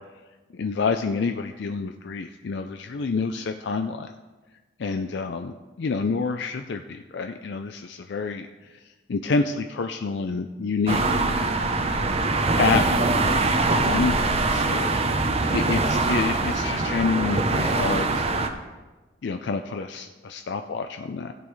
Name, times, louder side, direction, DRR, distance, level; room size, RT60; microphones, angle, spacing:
voice 1, 0.5-4.1 4.8-8.5 9.1-11.0 12.5-12.9 13.2-18.5 19.2-21.3, left 4 dB, 65° left, 6 dB, 0.4 m, -28 dB
sound 1, 10.9-18.5, right 3 dB, 35° right, 0.7 m, -23 dB
15.5 x 8.5 x 3.2 m, 1.2 s
head